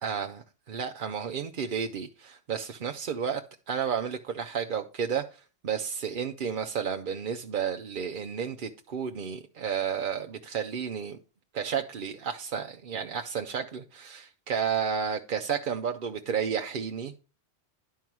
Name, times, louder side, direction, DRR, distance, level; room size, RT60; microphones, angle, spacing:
voice 1, 0.0-11.2 11.5-17.1, right 7 dB, 55° right, 0.8 m, -32 dB
11.0 x 4.6 x 6.0 m
omnidirectional pair, 1.1 m